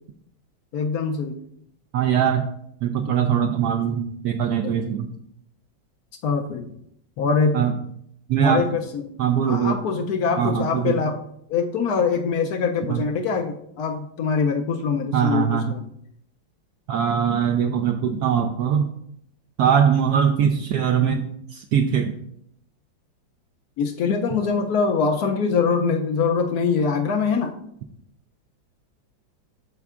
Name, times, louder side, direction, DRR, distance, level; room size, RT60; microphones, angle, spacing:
voice 1, 0.7-1.4 4.6-4.7 6.2-6.7 7.2-7.6 8.4-9.1 9.5-11.2 11.5-15.8 23.8-27.5, left 5 dB, 70° left, 5 dB, 0.9 m, -23 dB
voice 2, 1.9-2.5 2.8-5.1 7.5-7.7 8.3-8.6 9.2-9.8 10.4-11.0 12.9-13.0 15.1-15.8 16.9-18.9 19.6-22.2, right 8 dB, 80° right, 4 dB, 0.9 m, -21 dB
13.0 x 4.4 x 2.4 m, 0.72 s
omnidirectional pair, 2.2 m